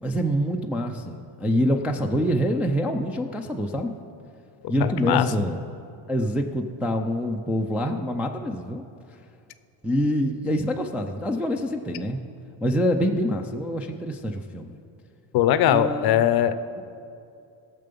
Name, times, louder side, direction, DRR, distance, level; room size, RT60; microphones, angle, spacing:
voice 1, 0.0-4.0 4.7-5.6 6.1-8.8 9.8-12.2 12.6-14.8 15.7-16.2, equal, 5° right, 1 dB, 0.3 m, -26 dB
voice 2, 4.8-5.3 15.3-16.8, left 10 dB, 50° left, 13 dB, 0.6 m, -21 dB
17.5 x 6.8 x 5.3 m, 2.6 s
cardioid pair, 130°, 49 cm